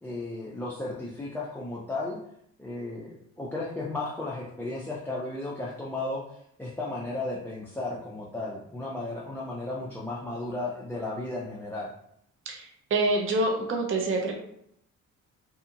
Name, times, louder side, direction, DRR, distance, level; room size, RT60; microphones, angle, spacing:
voice 1, 0.0-2.2 2.6-6.2 6.6-11.9, left 2 dB, 5° left, -5 dB, 0.4 m, -34 dB
voice 2, 12.5-14.4, right 2 dB, 45° right, 1 dB, 0.6 m, -26 dB
2.7 x 2.3 x 2.7 m, 0.72 s
cardioid pair, 90°, 30 cm